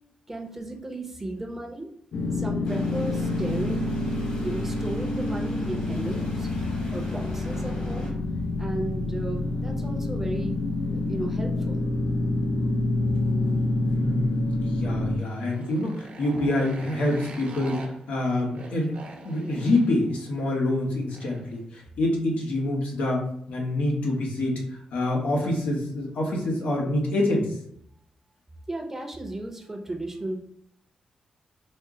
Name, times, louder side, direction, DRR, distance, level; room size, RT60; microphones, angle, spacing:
voice 1, 0.3-1.9 2.3-4.0 4.3-6.5 6.9-8.1 8.6-10.5 10.9-11.8 12.3-12.4 28.7-30.4, right 2 dB, 15° right, 1 dB, 0.6 m, -34 dB
sound 1, 2.1-15.2, left 2 dB, 65° left, 0.4 m, -27 dB
sound 2, 2.7-8.1, equal, 45° left, 1.3 m, -46 dB
voice 2, 14.0-18.9 19.2-24.6 24.9-27.5, left 1 dB, 85° left, -1 dB, 1.0 m, -26 dB
Motorcycle, 15.0-21.6, right 2 dB, 65° right, 0.8 m, -44 dB
4.2 x 2.0 x 3.7 m, 0.69 s
wide cardioid pair, 125°, 2 cm